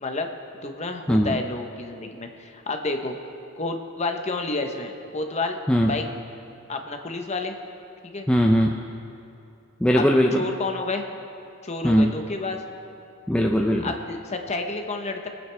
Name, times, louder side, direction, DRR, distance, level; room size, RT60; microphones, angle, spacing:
voice 1, 0.6-3.2 3.6-5.6 5.8-6.1 6.7-7.6 8.0-8.3 10.0-11.0 11.6-12.6 13.8-15.3, left 3 dB, 30° left, 5 dB, 0.8 m, -30 dB
voice 2, 8.3-8.7 9.8-10.4 11.8-12.2 13.3-13.9, equal, 5° left, 0 dB, 0.4 m, -19 dB
22.0 x 9.1 x 3.4 m, 2.7 s
head